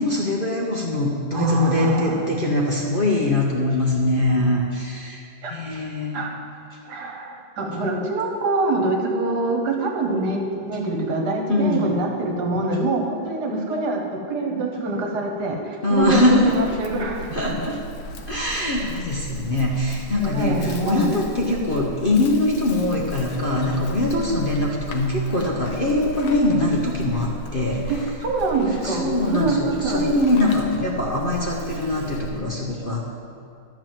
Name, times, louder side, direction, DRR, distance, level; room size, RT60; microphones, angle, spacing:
voice 1, 0.0-6.2 11.5-12.0 15.8-16.6 17.3-17.8 18.3-28.0 28.8-33.1, left 2 dB, 45° left, -2 dB, 0.7 m, -22 dB
voice 2, 1.3-2.2 5.4-5.6 6.1-6.3 6.9-14.0 14.3-17.6 20.2-21.2 28.2-30.1, right 2 dB, 60° right, 1 dB, 1.7 m, -24 dB
Livestock farm animals working animals, 15.9-32.4, left 1 dB, 90° left, 1.7 m, -36 dB
12.0 x 4.8 x 7.5 m, 2.4 s
omnidirectional pair, 2.1 m